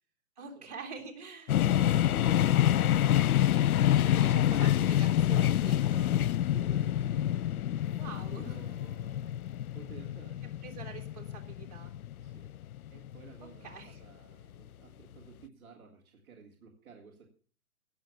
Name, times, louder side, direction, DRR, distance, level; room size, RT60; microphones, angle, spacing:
voice 1, 0.4-1.6 3.6-6.1 8.0-8.6 10.6-11.9 13.4-14.0, right 5 dB, 30° right, 0 dB, 3.0 m, -46 dB
sound 1, 1.5-13.3, left 12 dB, 85° left, 0.5 m, -27 dB
voice 2, 1.6-3.7 5.7-7.4 7.7-9.4 9.7-10.5 12.2-12.5 12.9-17.3, right 6 dB, 10° right, -7 dB, 1.5 m, -53 dB
17.5 x 6.8 x 6.9 m, 0.42 s
hypercardioid pair, 175°, 43 cm